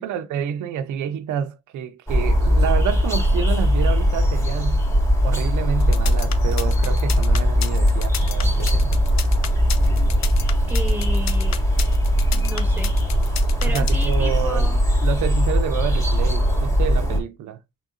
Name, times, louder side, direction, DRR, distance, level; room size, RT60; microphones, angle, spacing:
voice 1, 0.0-4.8 5.2-9.0 13.7-14.7 15.0-17.6, right 8 dB, 75° right, 0.6 m, -28 dB
sound 1, 2.1-17.2, equal, 10° left, 2.2 m, -19 dB
sound 2, 5.8-14.1, left 9 dB, 60° left, 0.8 m, -32 dB
voice 2, 10.7-11.6 12.3-12.9 13.6-14.8, right 2 dB, 5° right, 1.3 m, -33 dB
5.8 x 3.6 x 2.5 m
cardioid pair, 90°, 30 cm